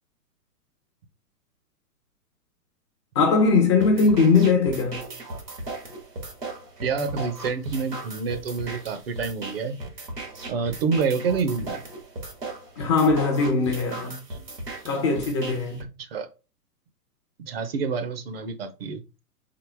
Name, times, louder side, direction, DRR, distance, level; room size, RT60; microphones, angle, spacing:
voice 1, 3.1-5.1 12.8-14.2 14.8-15.9, left 4 dB, 20° left, 0.5 m, -21 dB
sound 1, 3.8-15.8, right 2 dB, 85° right, 1.8 m, -37 dB
voice 2, 6.8-9.8 10.5-11.8 16.0-16.3 17.4-19.0, right 5 dB, 40° right, 0.7 m, -27 dB
3.9 x 3.9 x 3.4 m
figure-of-eight pair, 115°, 48 cm